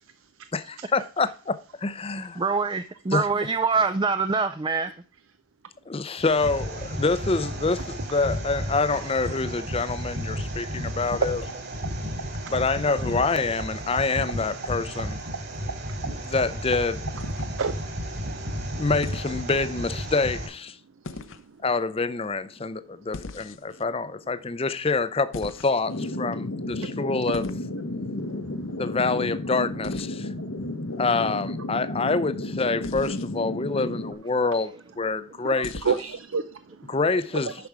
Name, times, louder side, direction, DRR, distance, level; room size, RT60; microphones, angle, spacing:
voice 1, 0.5-2.4 3.1-3.3 5.9-11.4 12.5-15.2 16.2-17.0 18.7-20.8 21.6-27.5 28.8-30.3 31.0-36.0 36.9-37.5, left 3 dB, 25° left, 0.6 m, -26 dB
voice 2, 2.4-4.9 33.7-33.8, right 4 dB, 20° right, 0.4 m, -25 dB
sound 1, 6.2-20.5, equal, 50° right, 3.5 m, -33 dB
sound 2, 17.1-17.8 19.0-19.4 21.0-21.5 23.1-23.8 25.3-26.0 27.3-27.7 29.8-30.1 32.8-33.3 35.6-36.2, left 3 dB, 65° left, 0.7 m, -39 dB
sound 3, 25.9-34.1, left 1 dB, 85° left, 1.2 m, -32 dB
voice 3, 28.0-28.7 30.3-30.4 30.9-31.0 35.4-36.9 37.5-37.6, right 5 dB, 70° right, 0.6 m, -31 dB
10.5 x 6.0 x 4.9 m
head